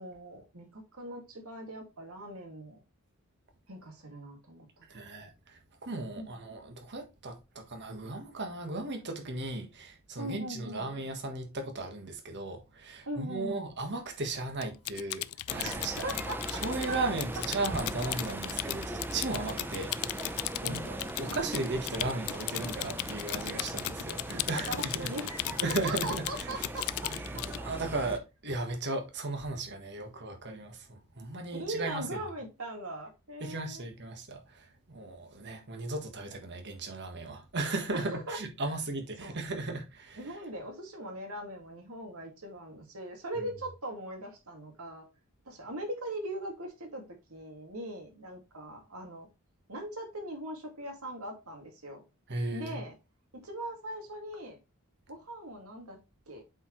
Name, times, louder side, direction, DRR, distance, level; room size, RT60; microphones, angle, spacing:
voice 1, 0.0-2.8 3.7-4.9 6.2-6.4 10.2-10.9 13.1-13.7 15.6-16.6 16.9-17.0 20.6-20.9 24.5-27.8 31.5-33.9 37.9-38.7 39.2-39.6 40.2-45.0 45.5-49.3 49.7-52.0 52.5-53.0 53.4-54.6 55.1-56.0 56.3-56.4, right 1 dB, 85° right, 2.2 m, -40 dB
voice 2, 4.9-16.1 16.5-20.4 20.6-25.1 25.6-26.7 27.1-32.2 33.4-40.2 52.3-52.8, right 2 dB, 55° right, 1.5 m, -36 dB
Typing, 14.6-27.6, left 16 dB, 75° left, 0.3 m, -37 dB
sound 1, 15.5-28.2, right 1 dB, 10° right, 0.5 m, -39 dB
8.0 x 4.6 x 3.1 m
head